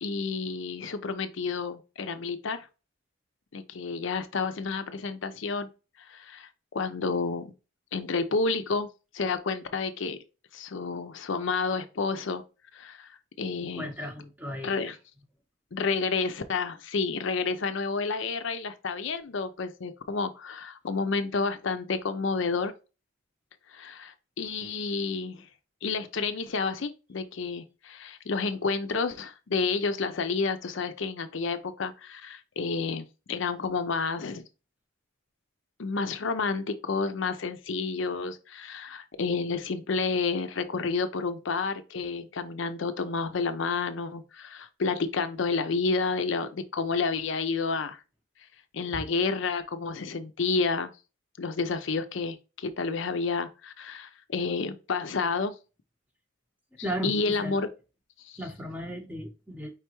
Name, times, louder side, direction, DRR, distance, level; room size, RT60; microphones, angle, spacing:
voice 1, 0.0-2.7 3.5-5.7 6.0-7.5 7.9-8.9 9.1-10.2 10.5-12.4 12.7-13.9 14.6-15.0 15.7-22.7 23.7-25.5 25.8-34.4 35.8-48.0 48.7-50.9 51.4-55.6 57.0-57.7 58.2-58.4, left 4 dB, 60° left, 0.5 m, -30 dB
voice 2, 13.6-14.9 48.9-49.0 56.8-57.6 58.4-59.8, equal, 10° right, 0.7 m, -36 dB
4.8 x 3.4 x 2.9 m
head